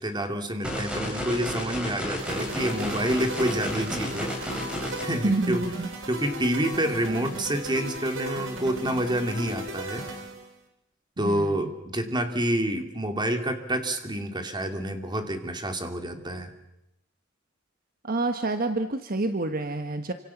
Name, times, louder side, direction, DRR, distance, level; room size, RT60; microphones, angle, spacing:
voice 1, 0.0-4.3 4.8-5.6 6.1-10.0 11.2-16.5, right 1 dB, 20° right, 6 dB, 2.8 m, -28 dB
sound 1, 0.6-5.0, equal, 5° right, 7.2 m, -32 dB
sound 2, 2.2-10.5, right 1 dB, 75° right, 4.5 m, -36 dB
voice 2, 5.2-5.9 11.2-11.7 18.0-20.1, right 2 dB, 45° right, 8 dB, 1.3 m, -28 dB
28.0 x 26.0 x 7.2 m, 0.89 s
head